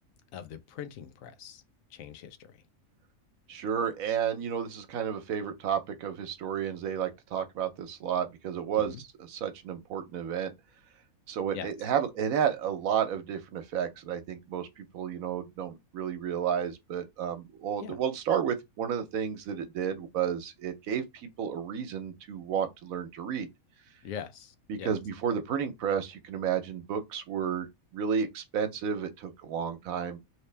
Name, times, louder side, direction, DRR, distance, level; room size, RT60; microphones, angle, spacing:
voice 1, 0.3-1.6 1.9-2.6 8.7-9.0 11.5-11.7 17.8-18.0 24.0-25.0, left 8 dB, 75° left, 1.1 m, -42 dB
voice 2, 3.5-8.9 9.3-10.5 11.3-23.5 24.7-30.2, right 8 dB, 80° right, 1.1 m, -32 dB
3.2 x 2.8 x 3.2 m
omnidirectional pair, 1.4 m